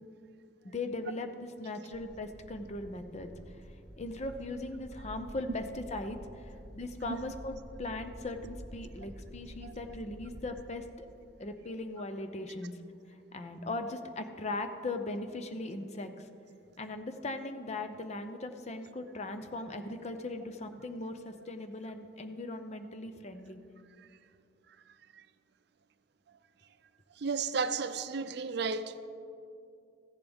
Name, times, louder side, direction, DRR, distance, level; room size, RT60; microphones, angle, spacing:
voice 1, 0.6-3.3 4.0-6.2 6.7-11.1 11.4-12.8 13.3-16.1 16.8-23.6, left 2 dB, 40° left, 0.6 m, -39 dB
sound 1, 1.9-10.5, equal, 20° right, 1.0 m, -49 dB
voice 2, 27.2-29.0, right 5 dB, 65° right, 0.5 m, -33 dB
15.0 x 10.5 x 3.5 m
head